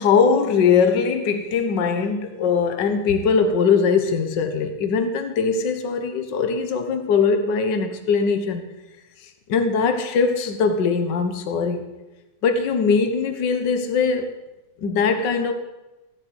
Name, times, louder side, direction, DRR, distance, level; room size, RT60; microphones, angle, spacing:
voice 1, 0.0-8.6 9.5-11.9 12.4-14.3 14.8-15.5, left 5 dB, 60° left, 1.8 m, -21 dB
16.0 x 10.5 x 8.0 m
omnidirectional pair, 2.3 m